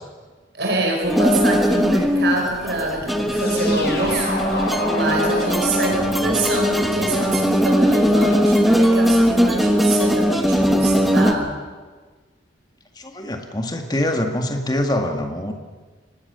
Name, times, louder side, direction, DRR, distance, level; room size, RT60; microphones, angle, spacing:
voice 1, 0.5-11.5, right 2 dB, 60° right, 2 dB, 5.1 m, -25 dB
sound 1, 1.0-11.3, equal, ahead, 1.2 m, -19 dB
sound 2, 3.3-8.2, left 1 dB, 55° left, 6.5 m, -29 dB
sound 3, 5.9-11.6, equal, 20° right, 5.7 m, -41 dB
voice 2, 13.0-15.5, left 1 dB, 20° left, 5 dB, 1.9 m, -24 dB
23.5 x 19.5 x 6.8 m, 1.4 s
head